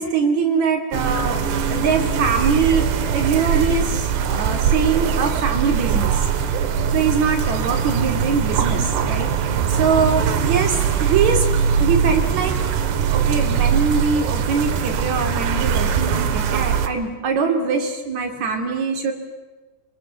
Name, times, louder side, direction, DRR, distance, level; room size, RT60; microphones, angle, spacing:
voice 1, 0.0-1.4 1.7-2.9 3.1-6.3 6.9-9.3 9.7-11.5 11.8-12.6 13.0-19.1, right 5 dB, 45° right, 3 dB, 3.6 m, -22 dB
sound 1, 0.9-16.9, right 7 dB, 80° right, 3.6 m, -21 dB
27.5 x 23.5 x 7.1 m, 1.2 s
omnidirectional pair, 4.8 m